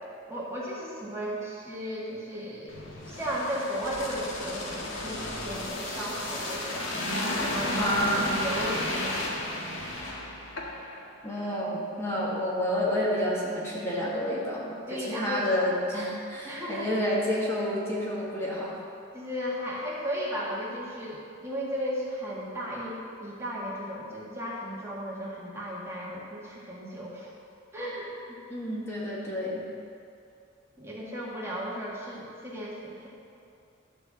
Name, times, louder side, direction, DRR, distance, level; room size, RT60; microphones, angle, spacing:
voice 1, 0.3-2.8 3.0-7.0 7.4-8.0 8.4-9.3 14.9-15.7 16.4-16.9 19.1-27.3 27.7-28.4 30.8-33.1, equal, 15° right, -6 dB, 1.8 m, -35 dB
sound 1, 2.7-11.0 11.4-11.5, left 1 dB, 85° left, 1.6 m, -33 dB
voice 2, 7.7-8.3 11.2-14.7 15.0-18.8 28.5-29.6, equal, 15° left, -6 dB, 1.7 m, -29 dB
13.0 x 4.5 x 7.2 m, 2.5 s
head